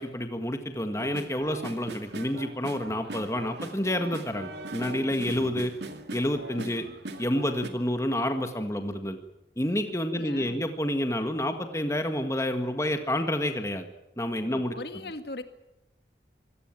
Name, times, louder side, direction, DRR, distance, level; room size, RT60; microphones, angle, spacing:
voice 1, 0.0-5.7 6.1-6.9 7.2-9.2 9.6-13.9 14.2-14.7, left 1 dB, 15° left, 7 dB, 1.7 m, -29 dB
sound 1, 1.0-7.7, right 2 dB, 80° right, 2.5 m, -40 dB
voice 2, 10.1-10.6 14.4-15.4, left 2 dB, 70° left, 8 dB, 2.0 m, -39 dB
25.5 x 17.5 x 9.1 m, 0.89 s
head